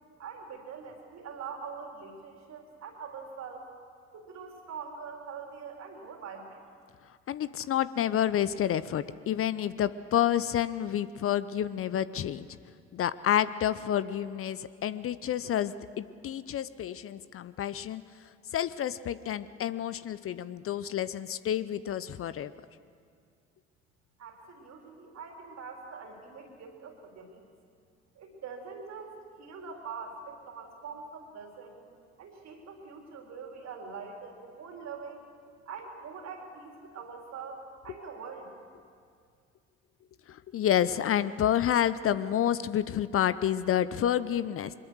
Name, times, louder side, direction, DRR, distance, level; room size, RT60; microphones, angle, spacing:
voice 1, 0.2-3.7 4.1-6.6 24.2-27.5 28.2-31.8 32.2-35.3 35.7-38.5, right 5 dB, 55° right, 2 dB, 3.9 m, -43 dB
voice 2, 7.3-12.6 12.9-18.0 18.5-22.5 40.3-44.7, left 10 dB, 45° left, 15 dB, 0.7 m, -29 dB
22.5 x 21.0 x 6.4 m, 2.2 s
hypercardioid pair, 50°, 32 cm